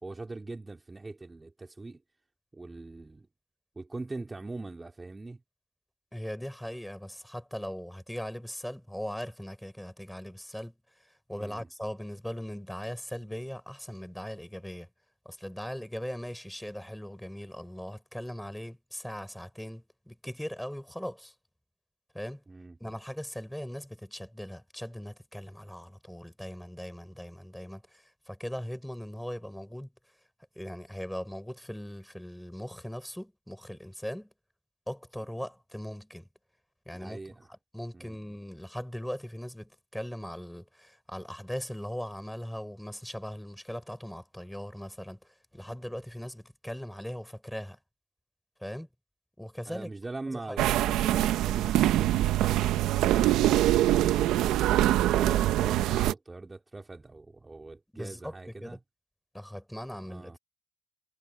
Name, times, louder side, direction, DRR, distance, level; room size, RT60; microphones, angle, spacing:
voice 1, 0.0-2.0 2.5-3.3 3.8-5.4 11.4-11.7 22.5-22.8 36.9-37.5 37.9-38.2 49.7-54.7 55.1-58.8 60.0-60.4, right 2 dB, 20° right, 2.7 m, -42 dB
voice 2, 6.1-14.9 15.3-21.3 22.1-22.4 22.8-29.9 30.6-34.3 34.9-36.3 36.9-37.2 37.5-47.8 48.6-48.9 49.4-49.9 50.3-50.6 57.9-58.8 59.3-60.4, equal, 5° left, 7.0 m, -39 dB
sound 1, 50.6-56.1, right 14 dB, 80° right, 1.0 m, -24 dB
supercardioid pair, 70°, 0 cm